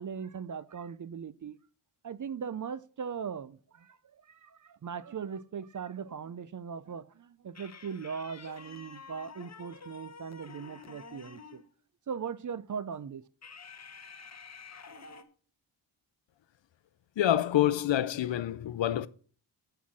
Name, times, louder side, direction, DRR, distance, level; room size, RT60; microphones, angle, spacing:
voice 1, 0.0-1.6 2.0-11.6 12.1-13.2, right 6 dB, 40° right, 0.5 m, -39 dB
sound 1, 7.5-11.7 13.4-15.2, left 4 dB, 35° left, 1.0 m, -49 dB
voice 2, 17.2-19.1, left 12 dB, 65° left, 0.6 m, -27 dB
8.4 x 5.7 x 7.3 m
wide cardioid pair, 95°, 48 cm